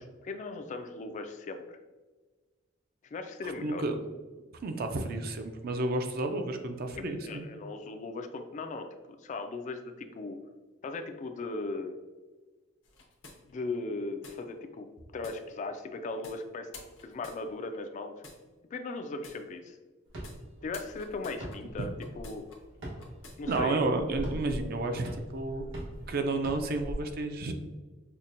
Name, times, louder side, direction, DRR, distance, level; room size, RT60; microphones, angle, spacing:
voice 1, 0.0-1.8 3.0-3.8 7.0-8.9 9.2-10.4 10.8-12.0 13.5-14.9 15.1-16.7 17.0-18.1 18.7-19.8 20.6-21.9 22.2-22.5 23.4-23.8, left 3 dB, 40° left, 6 dB, 0.3 m, -38 dB
voice 2, 3.4-4.0 4.6-7.5 21.8-21.9 23.5-25.7 26.1-27.5, right 2 dB, 50° right, 6 dB, 0.4 m, -31 dB
sound 1, 12.8-13.8 14.2-14.4 15.2-15.4 16.2-16.4 16.7-17.8 18.2-18.4 19.2-19.4 20.2-20.4 20.7-22.6 23.0-23.6, left 3 dB, 70° left, 0.7 m, -50 dB
sound 2, 20.1-26.9, equal, 90° right, 1.1 m, -42 dB
5.6 x 2.2 x 2.5 m, 1.3 s
head